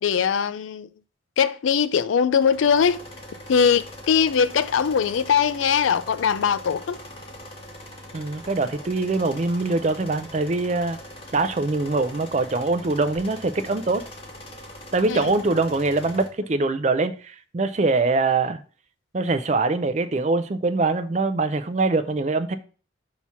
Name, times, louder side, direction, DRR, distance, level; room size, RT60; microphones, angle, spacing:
voice 1, 0.0-0.9 1.4-3.0 3.5-7.0 15.1-15.3, left 7 dB, 90° left, 0.4 m, -21 dB
sound 1, 2.3-16.3, left 1 dB, 30° left, 1.0 m, -42 dB
voice 2, 8.1-11.0 11.3-14.0 14.9-18.6 19.1-22.6, right 3 dB, 35° right, 0.4 m, -23 dB
6.0 x 2.9 x 5.5 m
head